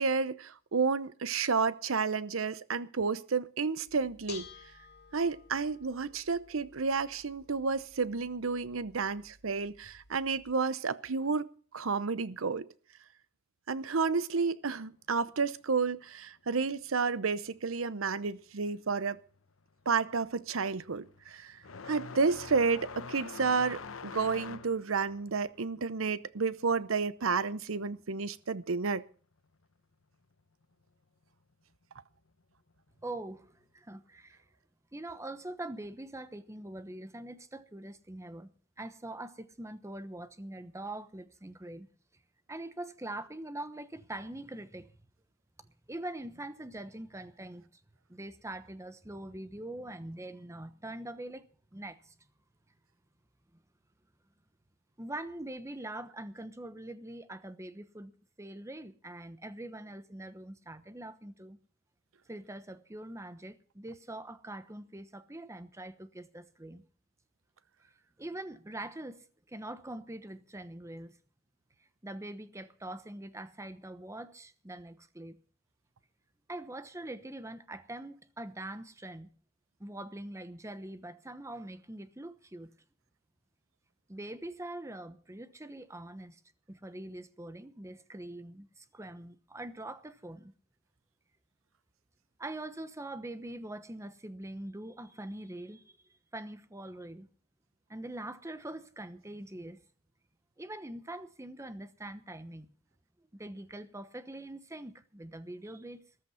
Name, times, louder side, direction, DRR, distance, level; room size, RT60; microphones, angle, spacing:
voice 1, 0.0-4.5 5.1-11.5 11.7-12.7 13.7-19.2 19.9-21.6 21.9-29.0, right 4 dB, 90° right, 0.8 m, -31 dB
Bell / Dishes pots and pans, 3.9-10.5, left 7 dB, 55° left, 2.4 m, -54 dB
sound 1, 19.1-19.4 19.7-28.0 28.3-29.3 30.3-30.4 31.2-31.3 33.1-33.2, left 5 dB, 85° left, 0.9 m, -46 dB
voice 2, 33.0-34.4 34.9-41.9 42.5-45.0 45.6-47.7 48.1-51.4 51.7-52.1 53.5-53.6 55.0-58.1 58.4-61.6 62.3-66.8 68.2-71.2 72.0-75.4 76.5-79.3 79.8-82.7 84.1-86.4 86.7-90.5 92.4-96.0 96.3-97.3 97.9-99.8 100.6-102.7 103.3-106.0, right 1 dB, 15° right, 1.1 m, -43 dB
14.0 x 13.5 x 5.7 m
head